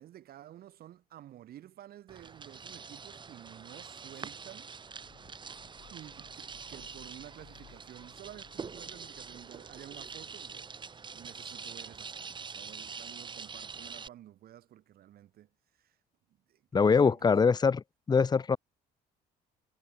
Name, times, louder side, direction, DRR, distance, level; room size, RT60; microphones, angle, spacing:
voice 1, 0.0-4.7 5.9-15.5 15.8-15.9 16.5-17.6, right 12 dB, 65° right, 3.4 m, -52 dB
sound 1, 2.1-14.1, right 5 dB, 25° right, 1.6 m, -45 dB
sound 2, 4.8-11.5, left 13 dB, 70° left, 7.5 m, -61 dB
voice 2, 16.7-18.6, left 5 dB, 25° left, 1.0 m, -24 dB
cardioid pair, 110°, 17 cm